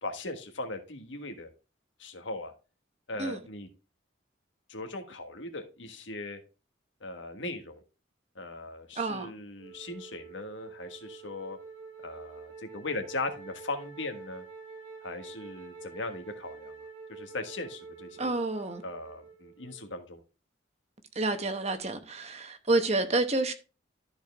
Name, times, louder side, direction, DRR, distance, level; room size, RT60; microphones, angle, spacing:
voice 1, 0.0-1.5 2.0-2.5 3.1-3.7 4.7-6.4 7.0-7.8 8.3-11.6 12.0-14.4 15.0-16.7 17.1-18.3 18.8-20.2, left 2 dB, 75° left, 1.5 m, -39 dB
voice 2, 9.0-9.3 18.2-18.8 21.2-23.5, right 2 dB, 35° right, 1.0 m, -29 dB
Wind instrument woodwind instrument, 9.6-20.0, right 4 dB, 85° right, 2.7 m, -47 dB
13.0 x 4.5 x 3.4 m
head